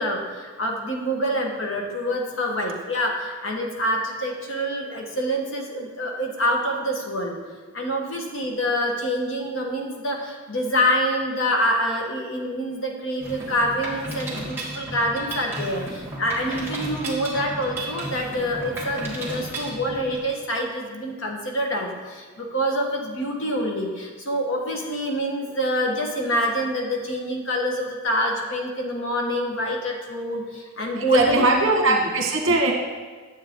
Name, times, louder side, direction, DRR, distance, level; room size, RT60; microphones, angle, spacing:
voice 1, 0.0-7.4 7.7-32.0, equal, 60° left, 1 dB, 1.3 m, -26 dB
Mechanisms, 13.2-20.2, right 1 dB, 10° right, 1.6 m, -34 dB
voice 2, 31.0-32.7, right 2 dB, 60° right, 0 dB, 1.5 m, -20 dB
9.5 x 7.7 x 3.7 m, 1.5 s
head